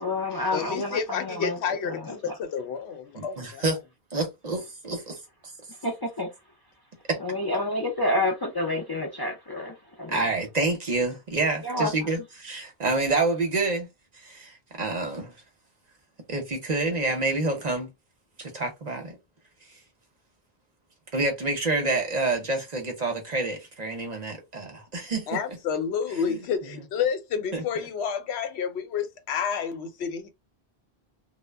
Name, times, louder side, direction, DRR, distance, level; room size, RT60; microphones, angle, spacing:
voice 1, 0.0-1.6 1.8-2.3 5.8-6.3 7.2-10.2 11.6-12.1, left 1 dB, 35° left, 0.4 m, -29 dB
voice 2, 0.5-3.6 25.3-30.3, left 7 dB, 85° left, 0.9 m, -30 dB
voice 3, 3.1-3.8 4.1-5.2 7.1-7.2 10.1-13.9 14.2-15.3 16.3-17.9 18.4-19.1 21.1-25.3 26.3-26.4 27.5-27.6, right 2 dB, 45° right, 0.7 m, -28 dB
2.0 x 2.0 x 3.3 m
omnidirectional pair, 1.1 m